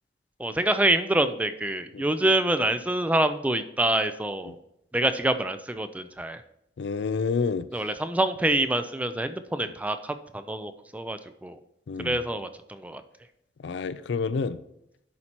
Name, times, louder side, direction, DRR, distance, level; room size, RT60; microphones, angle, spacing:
voice 1, 0.4-4.6 4.9-6.4 7.7-11.6 12.0-13.0, right 1 dB, 10° right, 10 dB, 0.4 m, -26 dB
voice 2, 6.8-7.7 11.9-12.2 13.6-14.6, left 5 dB, 75° left, 15 dB, 0.4 m, -28 dB
11.0 x 4.3 x 4.3 m, 0.79 s
head